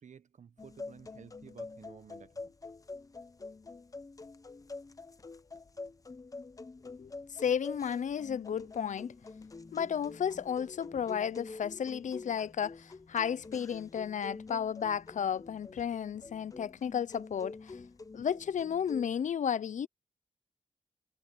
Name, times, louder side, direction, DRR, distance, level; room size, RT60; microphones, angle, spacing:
voice 1, 0.0-2.5, right 7 dB, 75° right, 1.1 m, -54 dB
sound 1, 0.6-19.1, left 3 dB, 25° left, 0.7 m, -47 dB
voice 2, 6.8-9.1 9.7-17.8 18.1-19.9, left 8 dB, 90° left, 0.5 m, -33 dB
wide cardioid pair, 130°, 13 cm